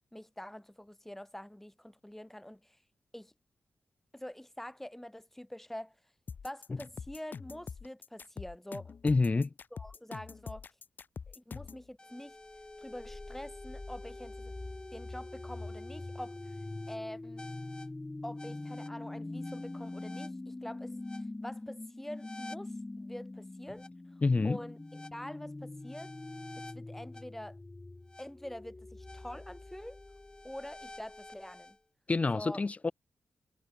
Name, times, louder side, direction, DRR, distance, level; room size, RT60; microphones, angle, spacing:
voice 1, 0.0-2.8 3.1-3.3 4.1-6.0 6.4-8.9 9.7-10.7 11.3-12.4 12.8-14.5 14.9-16.6 16.9-17.5 18.2-22.7 23.0-23.9 24.4-26.1 26.7-27.6 28.2-30.0 30.4-31.8 32.3-32.6, left 1 dB, 10° left, 2.9 m, -45 dB
sound 1, 6.3-11.8, left 5 dB, 65° left, 3.6 m, -44 dB
voice 2, 9.0-9.5 24.2-24.6 32.1-32.9, left 3 dB, 40° left, 1.5 m, -27 dB
sound 2, 12.0-31.7, left 2 dB, 25° left, 0.7 m, -44 dB
cardioid pair, 50°, 4 cm